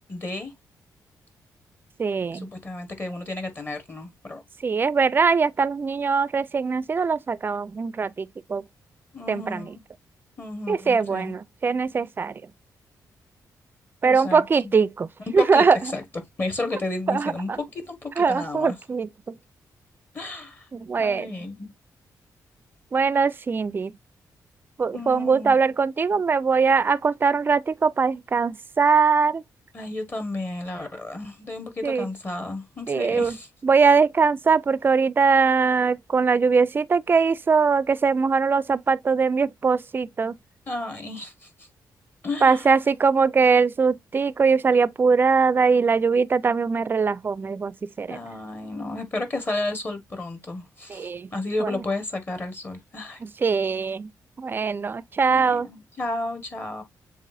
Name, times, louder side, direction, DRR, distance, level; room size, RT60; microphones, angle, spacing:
voice 1, 0.1-0.5 2.3-4.4 9.1-9.8 10.4-11.3 14.0-14.4 15.3-16.0 16.4-18.8 20.1-20.7 21.0-21.7 24.9-25.6 29.7-33.5 40.7-41.5 42.2-42.7 48.1-53.2 55.3-56.8, left 2 dB, 30° left, 1.5 m, -32 dB
voice 2, 2.0-2.5 4.6-8.6 9.3-9.6 10.7-12.4 14.0-15.1 15.3-15.8 17.1-17.6 18.2-19.1 20.7-21.4 22.9-23.9 24.8-29.4 31.8-32.1 32.9-33.3 33.6-40.3 42.4-48.2 50.9-51.3 51.6-51.8 53.2-54.1 54.4-55.7, right 5 dB, 30° right, 0.4 m, -21 dB
7.2 x 2.5 x 2.6 m
cardioid pair, 100°, 7 cm